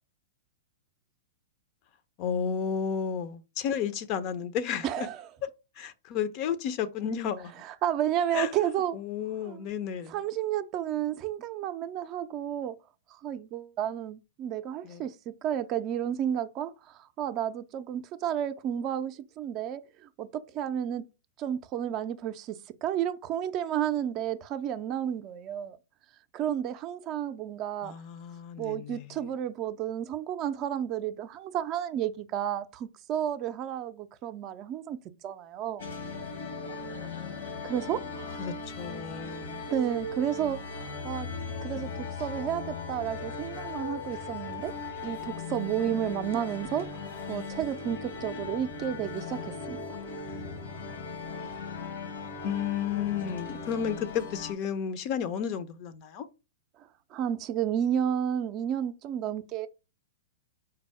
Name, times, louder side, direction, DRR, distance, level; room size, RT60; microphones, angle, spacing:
voice 1, 2.2-5.1 5.8-7.5 8.3-8.5 8.9-10.2 14.8-15.0 27.8-29.1 38.4-39.7 52.4-56.2, left 7 dB, 45° left, 0.5 m, -32 dB
voice 2, 4.8-5.3 7.6-9.0 9.4-9.7 10.1-12.8 13.1-21.0 21.4-25.8 26.3-27.9 28.6-35.8 37.1-37.4 37.6-38.4 39.7-41.3 41.6-44.7 45.0-46.9 47.3-49.8 57.1-59.7, right 10 dB, 40° right, 0.4 m, -32 dB
sound 1, 35.8-54.5, left 3 dB, 75° left, 1.1 m, -38 dB
4.5 x 2.0 x 4.6 m
hypercardioid pair, 110°, 0 cm